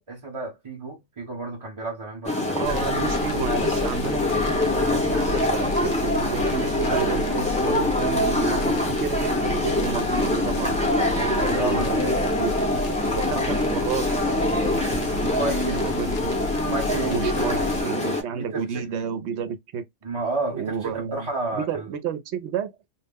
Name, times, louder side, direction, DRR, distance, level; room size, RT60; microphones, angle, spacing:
voice 1, 0.1-2.9 6.8-7.4 11.6-12.1 13.3-13.5 15.3-16.0 16.7-17.7 18.1-18.8 20.0-21.9, right 3 dB, 35° right, 0.7 m, -32 dB
sound 1, 2.2-18.2, left 1 dB, 10° left, 0.5 m, -24 dB
voice 2, 2.5-12.6 13.2-16.3 17.1-19.9 20.5-21.3 21.5-22.7, right 7 dB, 75° right, 0.8 m, -31 dB
sound 2, 2.6-17.8, left 3 dB, 65° left, 0.8 m, -33 dB
2.3 x 2.0 x 3.4 m
omnidirectional pair, 1.2 m